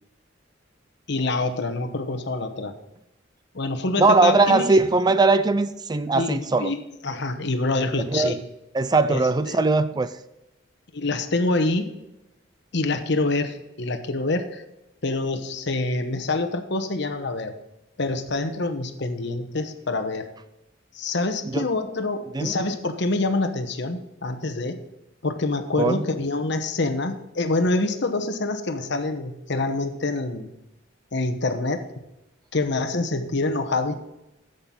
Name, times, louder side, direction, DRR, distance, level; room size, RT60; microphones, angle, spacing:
voice 1, 1.1-2.7 3.5-4.8 6.1-8.4 9.1-9.6 10.9-11.9 12.7-14.6 15.0-17.5 18.0-20.3 20.9-24.8 25.2-30.5 31.1-31.8 32.5-34.0, left 2 dB, 60° left, 8 dB, 1.0 m, -26 dB
voice 2, 4.0-6.7 8.1-8.4 8.7-10.1 21.5-21.6 22.3-22.6 25.8-26.0, right 3 dB, 20° right, 13 dB, 0.4 m, -20 dB
11.5 x 7.8 x 3.8 m, 0.93 s
head